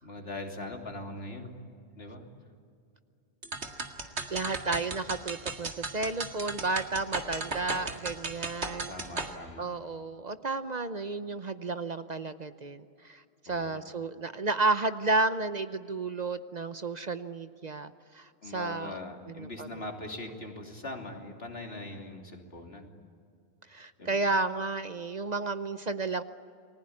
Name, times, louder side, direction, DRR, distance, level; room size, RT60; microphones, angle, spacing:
voice 1, 0.0-1.6 2.0-2.3 8.9-9.7 13.5-13.8 18.4-22.9 24.0-24.2, left 2 dB, 65° left, 3 dB, 3.3 m, -41 dB
sound 1, 3.4-9.3, right 3 dB, 90° right, 2.2 m, -36 dB
voice 2, 4.3-8.9 9.6-19.0 19.3-19.8 23.7-26.2, right 3 dB, 45° right, 11 dB, 0.8 m, -32 dB
30.0 x 20.5 x 8.7 m, 2.4 s
omnidirectional pair, 1.1 m